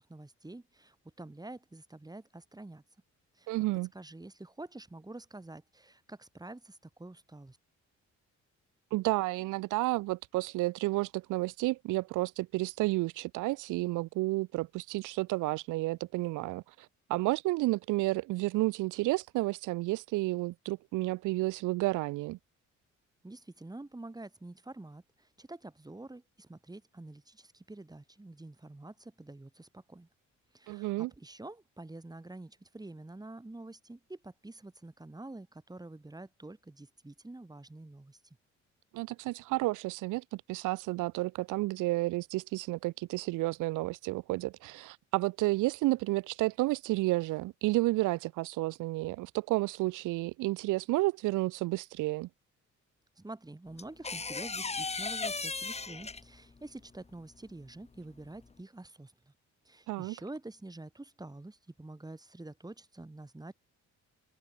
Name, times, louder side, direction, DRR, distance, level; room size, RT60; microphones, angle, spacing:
voice 1, 0.0-2.8 3.3-3.5 3.9-7.6 23.2-30.1 30.5-38.2 53.2-59.3 59.6-63.5, right 2 dB, 15° right, 4.0 m, -47 dB
voice 2, 3.5-3.9 8.9-22.4 30.7-31.1 38.9-52.3 59.9-60.1, right 20 dB, 85° right, 0.5 m, -31 dB
sound 1, 53.8-56.5 58.2-58.5, left 4 dB, 20° left, 1.4 m, -36 dB
open air
cardioid pair, 90°, 30 cm